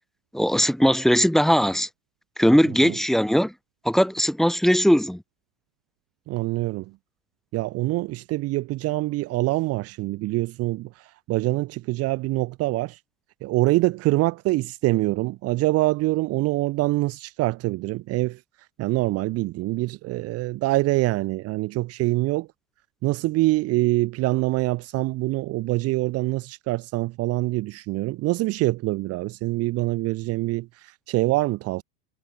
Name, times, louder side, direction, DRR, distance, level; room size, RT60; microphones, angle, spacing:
voice 1, 0.3-1.9 2.4-3.5 3.8-5.2, equal, ahead, 2.5 m, -19 dB
voice 2, 6.3-6.9 7.5-13.0 13.4-18.4 18.8-22.5 23.0-31.8, right 19 dB, 30° right, 1.5 m, -25 dB
supercardioid pair, 160°, 49 cm